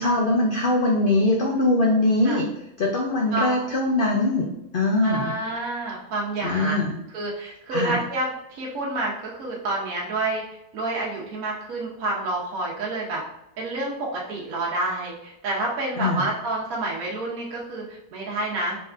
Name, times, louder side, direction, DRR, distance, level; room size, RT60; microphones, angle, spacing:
voice 1, 0.0-2.5 2.8-4.5 4.7-5.3 6.4-7.0 7.7-8.0 16.0-16.3, left 2 dB, 80° left, -1 dB, 0.4 m, -22 dB
voice 2, 3.3-3.6 5.0-6.8 7.1-10.4 10.7-13.2 13.6-18.8, right 2 dB, 70° right, -3 dB, 1.2 m, -28 dB
3.9 x 3.4 x 2.4 m, 0.84 s
omnidirectional pair, 1.6 m